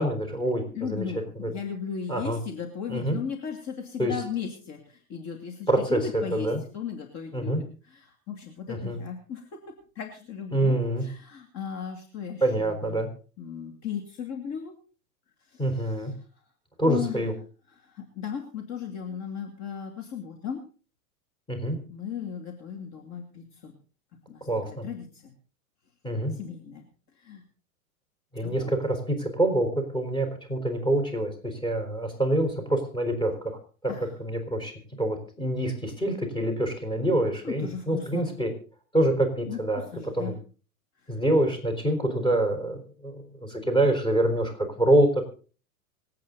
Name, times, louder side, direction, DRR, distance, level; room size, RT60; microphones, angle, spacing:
voice 1, 0.0-1.0 1.4-1.5 2.1-2.4 2.9-3.2 4.0-4.2 5.7-6.6 7.3-7.6 8.7-9.0 10.5-11.1 12.4-13.1 15.6-16.1 16.8-17.3 21.5-21.8 24.5-24.9 26.0-26.4 28.3-33.6 34.2-34.7 35.0-38.5 38.9-39.8 40.1-40.4 41.1-45.2, right 1 dB, 10° left, 5 dB, 4.3 m, -26 dB
voice 2, 0.7-9.5 10.0-13.0 13.4-14.7 15.5-15.9 16.9-17.2 17.8-20.6 21.9-23.7 24.3-25.3 26.3-26.8 27.2-27.4 28.4-28.7 33.9-34.1 37.4-38.3 39.5-40.4, left 7 dB, 40° left, 3 dB, 2.5 m, -36 dB
25.5 x 8.6 x 4.0 m, 0.38 s
hypercardioid pair, 100°, 43 cm